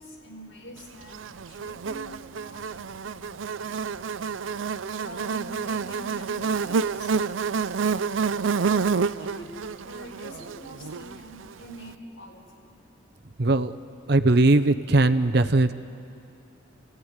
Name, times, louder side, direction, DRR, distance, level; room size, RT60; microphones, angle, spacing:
voice 1, 0.0-3.8 4.9-8.1 8.4-9.6 9.8-12.7, equal, 80° left, 0 dB, 4.8 m, -45 dB
Buzz, 1.1-11.5, right 5 dB, 80° right, 0.5 m, -28 dB
voice 2, 13.4-13.7 14.1-15.7, right 2 dB, 55° right, 9 dB, 0.9 m, -19 dB
29.5 x 16.5 x 9.6 m, 2.5 s
head